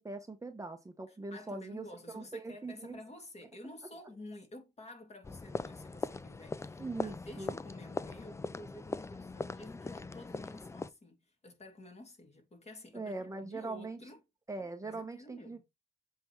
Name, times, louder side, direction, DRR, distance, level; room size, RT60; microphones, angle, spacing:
voice 1, 0.0-3.0 6.8-7.5 12.9-14.0 14.5-15.6, right 3 dB, 15° right, 1.0 m, -41 dB
voice 2, 1.1-13.1 13.4-14.2 14.8-15.6, left 1 dB, 35° left, 2.5 m, -51 dB
sound 1, 5.2-10.9, left 3 dB, 15° left, 0.4 m, -41 dB
7.7 x 3.6 x 4.5 m
cardioid pair, 90°, 20 cm